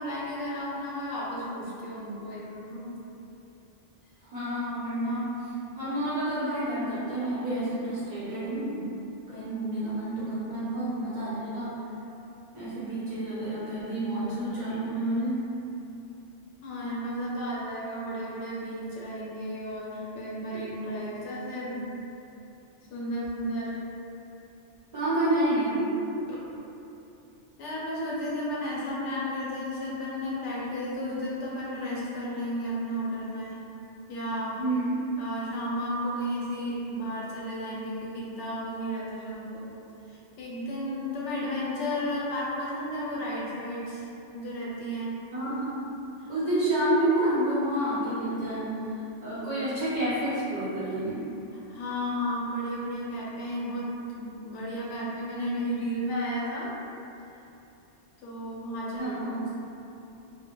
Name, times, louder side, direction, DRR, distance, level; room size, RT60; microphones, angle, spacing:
voice 1, 0.0-3.0 16.6-21.8 22.9-23.8 26.3-26.4 27.6-33.6 34.1-34.6 35.2-39.7 40.1-44.1 44.3-45.2 46.2-46.3 51.8-56.7 58.2-59.5, equal, 80° left, -6 dB, 0.9 m, -33 dB
voice 2, 4.2-5.5 5.8-8.8 9.3-11.8 12.5-15.5 24.9-26.0 34.6-35.0 45.3-45.9 46.3-48.7 49.2-51.3 59.0-59.5, right 1 dB, 45° right, -12 dB, 0.8 m, -29 dB
2.2 x 2.1 x 2.8 m, 2.8 s
omnidirectional pair, 1.2 m